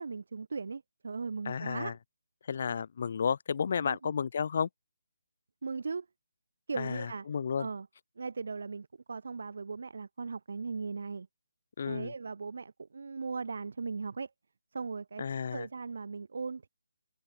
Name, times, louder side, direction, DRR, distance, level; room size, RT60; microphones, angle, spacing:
voice 1, 0.0-2.0 3.8-4.1 5.6-6.0 6.7-7.3 7.6-7.9 8.2-11.3 11.9-14.3 14.7-15.2 15.5-16.7, right 4 dB, 65° right, 3.3 m, -38 dB
voice 2, 1.4-1.9 2.5-4.7 6.7-7.7 11.8-12.1 15.2-15.7, left 6 dB, 50° left, 3.2 m, -32 dB
figure-of-eight pair, 160°, 0 cm